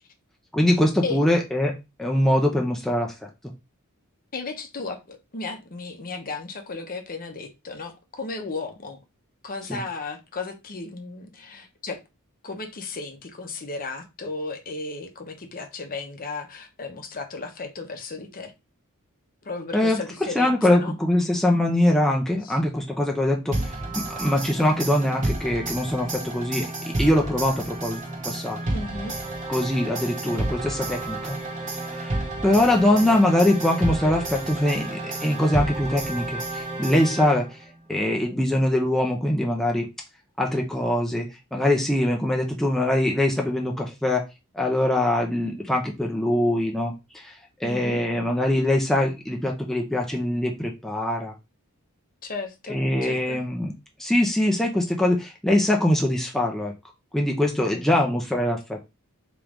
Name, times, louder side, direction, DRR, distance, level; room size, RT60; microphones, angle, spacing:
voice 1, 0.5-3.3 9.7-9.8 19.7-20.0 20.3-28.6 29.5-31.4 31.9-37.6 37.9-39.9 40.4-44.2 44.5-51.3 52.7-53.7 54.0-56.7 57.1-58.9, left 1 dB, ahead, 0 dB, 0.5 m, -23 dB
voice 2, 4.3-9.0 9.4-12.0 12.4-18.5 19.4-21.0 22.4-22.6 28.7-29.1 47.6-48.1 52.2-53.4 57.6-58.1, left 3 dB, 40° left, 5 dB, 0.7 m, -35 dB
sound 1, 23.5-37.6, right 2 dB, 35° right, 1.1 m, -31 dB
3.7 x 3.0 x 3.4 m, 0.26 s
head